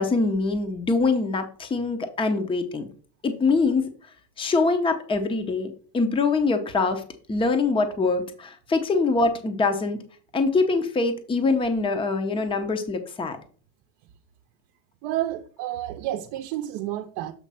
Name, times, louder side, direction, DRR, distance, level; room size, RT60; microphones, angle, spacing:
voice 1, 0.0-2.9 3.2-3.9 4.4-7.0 7.3-10.0 10.3-13.4, left 3 dB, 15° left, 0.7 m, -24 dB
voice 2, 15.0-17.3, right 13 dB, 60° right, 0.7 m, -30 dB
7.4 x 3.2 x 5.5 m
supercardioid pair, 140°, 39 cm